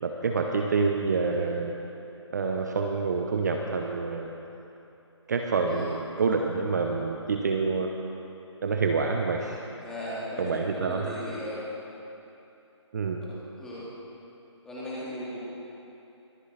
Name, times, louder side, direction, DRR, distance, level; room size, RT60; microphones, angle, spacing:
voice 1, 0.0-1.7 2.3-4.3 5.3-7.9 8.6-9.6 10.4-11.2 12.9-13.2, right 4 dB, 35° right, 3 dB, 0.7 m, -27 dB
voice 2, 9.8-11.6 13.6-13.8 14.6-15.4, equal, 5° left, -10 dB, 2.2 m, -36 dB
23.5 x 8.2 x 4.1 m, 2.9 s
hypercardioid pair, 165°, 15 cm